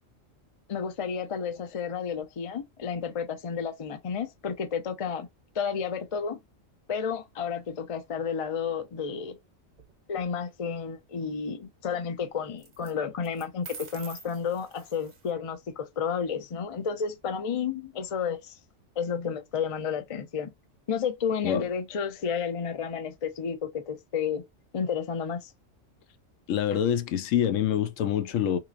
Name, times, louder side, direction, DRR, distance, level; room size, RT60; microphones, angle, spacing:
voice 1, 0.7-5.3 5.5-6.4 6.9-9.4 10.1-18.6 19.0-20.5 20.9-24.5 24.7-25.5, left 6 dB, 40° left, 0.5 m, -31 dB
sound 1, 9.7-10.2 12.6-12.9 13.2-15.3, right 5 dB, 40° right, 0.7 m, -46 dB
voice 2, 26.5-28.6, left 9 dB, 75° left, 0.9 m, -26 dB
3.7 x 3.0 x 2.5 m
omnidirectional pair, 1.3 m